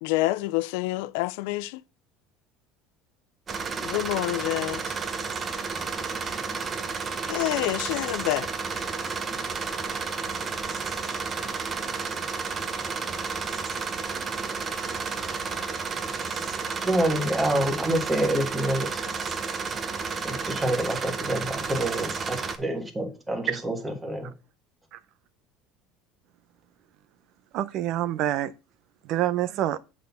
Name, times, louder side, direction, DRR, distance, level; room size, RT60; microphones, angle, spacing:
voice 1, 0.0-1.8 3.8-5.0 7.3-8.5, left 18 dB, 75° left, 0.4 m, -27 dB
sound 1, 3.5-22.6, right 5 dB, 25° right, 0.8 m, -31 dB
voice 2, 16.8-19.0 20.2-24.3, right 1 dB, 10° right, 1.3 m, -27 dB
voice 3, 27.5-28.5 29.1-29.8, right 12 dB, 50° right, 0.5 m, -26 dB
7.6 x 4.3 x 6.9 m
cardioid pair, 160°, 0 cm